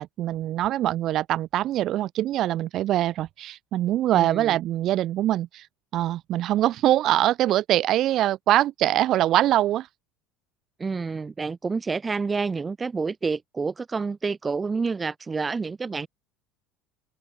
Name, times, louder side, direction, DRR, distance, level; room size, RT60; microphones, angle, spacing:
voice 1, 0.0-5.7 5.9-9.9, right 13 dB, 50° right, 0.4 m, -23 dB
voice 2, 4.1-4.6 10.8-16.1, right 4 dB, 20° right, 2.3 m, -28 dB
open air
supercardioid pair, 120°, 0 cm